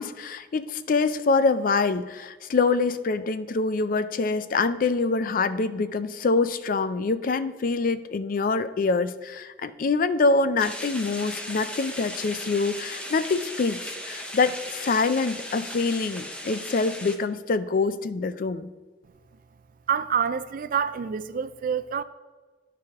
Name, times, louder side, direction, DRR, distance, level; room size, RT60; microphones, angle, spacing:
voice 1, 0.0-18.7, left 4 dB, 50° left, 0.4 m, -25 dB
sound 1, 10.6-17.2, left 1 dB, 5° left, 0.7 m, -37 dB
voice 2, 19.9-22.0, right 7 dB, 50° right, 0.4 m, -27 dB
12.0 x 4.8 x 3.5 m
head